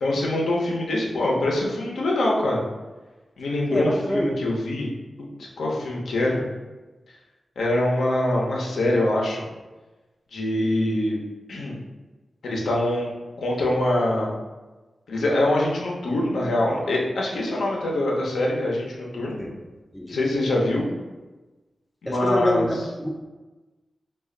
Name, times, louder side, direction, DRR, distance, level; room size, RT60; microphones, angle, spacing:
voice 1, 0.0-2.6 3.4-4.9 5.2-6.4 7.6-9.4 10.3-11.1 11.5-11.8 12.4-13.1 13.4-14.3 15.1-19.4 20.1-20.8 22.0-22.6, left 1 dB, 90° left, -2 dB, 0.7 m, -24 dB
voice 2, 3.7-4.4 19.4-19.6 19.9-20.2 22.1-23.1, left 1 dB, 5° left, 1 dB, 0.4 m, -26 dB
3.3 x 2.4 x 3.7 m, 1.2 s
cardioid pair, 75°, 0 cm